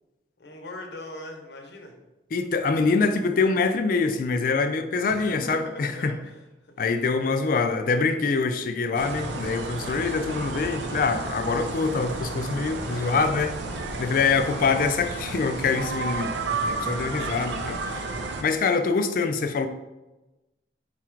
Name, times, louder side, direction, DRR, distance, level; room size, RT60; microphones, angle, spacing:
voice 1, 0.4-1.9 5.0-7.7 12.9-13.8, left 1 dB, 70° left, 2 dB, 0.8 m, -42 dB
voice 2, 2.3-6.2 6.8-13.5 14.0-16.3 16.7-18.0 18.4-19.7, left 4 dB, 50° left, 8 dB, 0.3 m, -25 dB
sound 1, 8.9-18.4, right 3 dB, 85° right, 0.5 m, -32 dB
4.1 x 2.4 x 4.4 m, 1.0 s
head